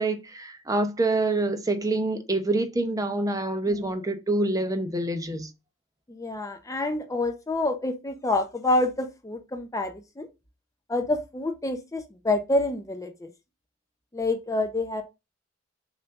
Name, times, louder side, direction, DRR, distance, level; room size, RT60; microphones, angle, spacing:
voice 1, 0.0-5.5, right 2 dB, 15° right, 0.8 m, -26 dB
voice 2, 6.1-10.3 10.9-13.3 14.1-15.0, left 2 dB, 15° left, 0.6 m, -27 dB
6.9 x 2.7 x 5.7 m
head